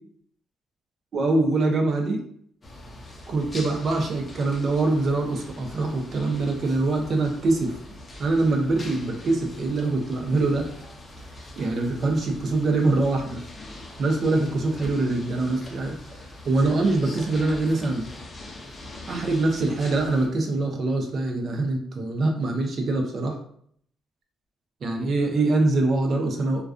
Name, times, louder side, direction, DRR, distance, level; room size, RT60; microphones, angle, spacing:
voice 1, 1.1-2.2 3.3-7.8 8.2-10.7 11.6-13.4 14.0-16.0 16.4-18.1 19.1-23.4 24.8-26.6, right 2 dB, 55° right, 2 dB, 0.5 m, -24 dB
sound 1, 2.6-20.3, left 1 dB, 30° left, 0.6 m, -43 dB
2.3 x 2.3 x 2.4 m, 0.64 s
cardioid pair, 90°, 0 cm